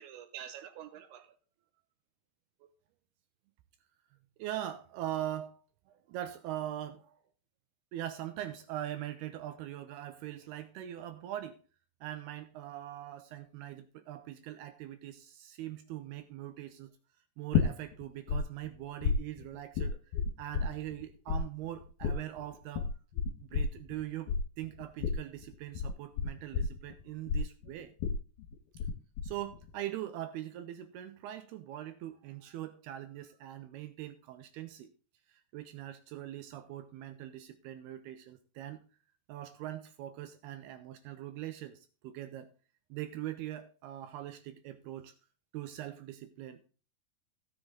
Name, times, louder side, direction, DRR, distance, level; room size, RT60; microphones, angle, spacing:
voice 1, 0.0-1.4 4.4-5.6 5.9-7.2 7.9-11.6 12.0-16.9 17.4-20.0 20.4-22.9 23.4-27.9 29.2-34.9 35.3-38.8 39.3-42.5 42.9-45.1 45.5-46.6, right 12 dB, 80° right, 2.7 m, -42 dB
sound 1, 17.5-18.4 18.6-21.0 21.3-28.9 29.2-29.7, left 6 dB, 60° left, 2.5 m, -31 dB
16.0 x 7.2 x 3.9 m
omnidirectional pair, 4.8 m